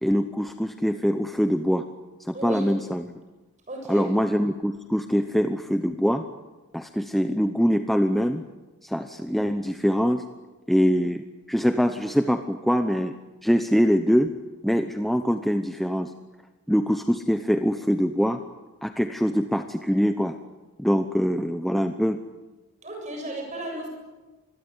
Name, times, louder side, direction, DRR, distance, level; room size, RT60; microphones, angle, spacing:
voice 1, 0.0-1.9 2.3-3.1 3.9-6.2 6.7-8.4 8.8-10.3 10.7-13.1 13.4-14.3 14.6-16.1 16.7-18.4 18.8-20.4 20.8-22.2, equal, ahead, 7 dB, 0.8 m, -23 dB
voice 2, 2.3-2.7 3.7-4.1 22.8-23.9, right 1 dB, 35° right, 2 dB, 7.6 m, -34 dB
26.5 x 21.5 x 9.7 m, 1.2 s
head